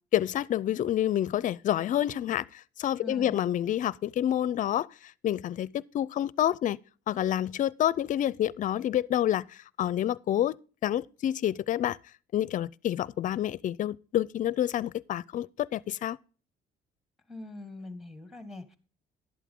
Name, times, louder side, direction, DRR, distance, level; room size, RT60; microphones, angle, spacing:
voice 1, 0.1-6.8 7.1-10.6 10.8-12.0 12.3-16.2, left 11 dB, 50° left, 0.5 m, -28 dB
voice 2, 3.0-3.4 17.3-18.8, left 2 dB, ahead, 1.6 m, -42 dB
11.5 x 8.4 x 3.7 m
cardioid pair, 110°, 17 cm